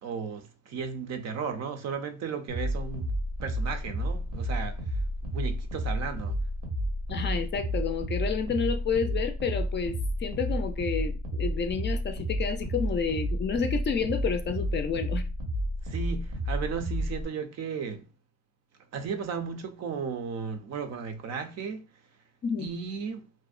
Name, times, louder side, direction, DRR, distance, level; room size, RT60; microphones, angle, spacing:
voice 1, 0.0-3.1 3.4-4.8 5.3-6.4 15.8-18.1 18.9-21.8 22.6-23.2, right 6 dB, 60° right, 0.5 m, -35 dB
sound 1, 2.5-17.2, equal, 85° right, 0.9 m, -31 dB
voice 2, 7.1-15.3 22.4-22.7, left 6 dB, 35° left, 0.4 m, -30 dB
2.6 x 2.0 x 2.3 m
cardioid pair, 90°, 30 cm